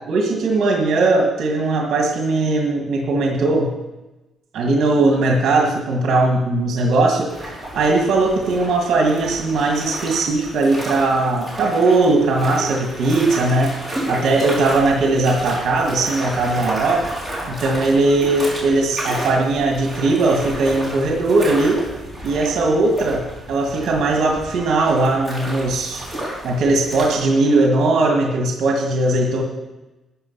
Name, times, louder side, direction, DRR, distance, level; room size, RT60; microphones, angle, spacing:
voice 1, 0.1-3.7 4.5-13.7 14.1-17.0 17.5-21.8 22.2-23.2 23.5-26.0 26.4-29.4, right 2 dB, 65° right, 0 dB, 2.0 m, -19 dB
sound 1, 7.3-27.2, right 1 dB, ahead, 3.9 m, -32 dB
12.5 x 8.1 x 5.7 m, 1.1 s
cardioid pair, 140°, 0 cm